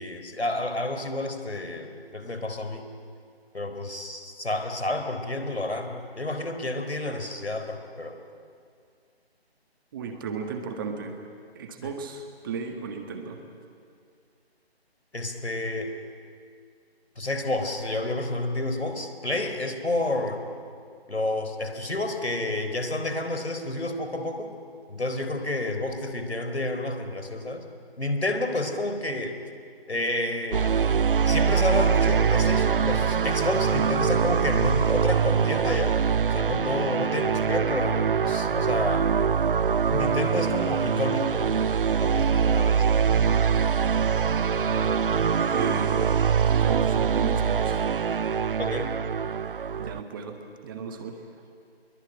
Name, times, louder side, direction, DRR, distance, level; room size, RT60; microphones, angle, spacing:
voice 1, 0.0-2.9 3.5-8.2 11.8-11.9 15.1-15.9 17.2-20.4 21.1-24.6 24.9-27.6 28.0-29.4 29.9-30.6 31.3-36.0 36.3-39.1 39.9-41.6 42.0-42.9 48.6-48.9, left 2 dB, 90° left, 6 dB, 4.0 m, -30 dB
voice 2, 9.9-11.2 11.5-13.4 45.2-46.0 46.5-47.9 49.8-50.4 50.6-51.2, right 5 dB, 20° right, 5 dB, 1.6 m, -35 dB
sound 1, 30.5-50.0, right 6 dB, 55° right, 0.6 m, -23 dB
23.0 x 23.0 x 9.0 m, 2.3 s
figure-of-eight pair, 155°, 32 cm